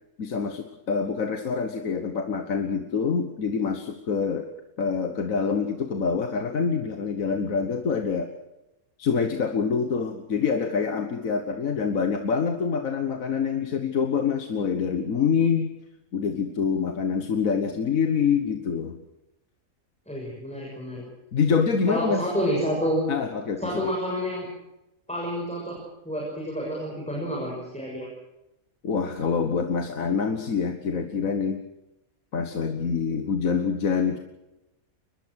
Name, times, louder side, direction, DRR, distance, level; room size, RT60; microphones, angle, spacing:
voice 1, 0.2-4.5 4.8-8.3 9.0-15.7 16.1-19.0 21.3-22.3 23.1-23.8 28.8-31.6 32.3-34.2, left 6 dB, 70° left, 7 dB, 1.7 m, -26 dB
voice 2, 20.1-21.0 21.9-23.0 23.6-24.5 25.1-25.8 26.0-28.1, equal, 5° left, -3 dB, 6.7 m, -29 dB
23.0 x 21.0 x 6.3 m, 0.94 s
omnidirectional pair, 1.5 m